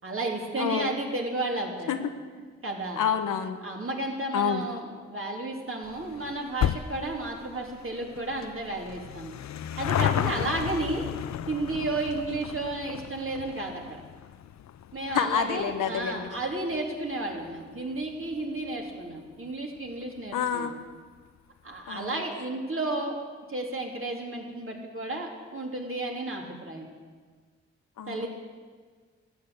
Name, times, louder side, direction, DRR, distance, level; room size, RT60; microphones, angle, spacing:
voice 1, 0.0-1.9 2.6-3.0 3.6-9.3 9.8-11.1 11.5-14.0 14.9-20.7 21.6-23.2 23.5-26.9 28.1-28.3, right 2 dB, 45° right, 0 dB, 3.3 m, -32 dB
voice 2, 0.6-0.9 1.9-2.0 3.0-3.6 4.3-4.7 15.1-16.3 20.3-20.7 21.9-22.2 28.0-28.3, left 7 dB, 85° left, 8 dB, 1.0 m, -28 dB
sound 1, 5.8-18.6 18.9-19.0 19.9-20.0 20.2-20.3 20.5-20.6, left 10 dB, 60° left, 0.5 m, -34 dB
14.0 x 8.5 x 8.1 m, 1.5 s
supercardioid pair, 45°, 31 cm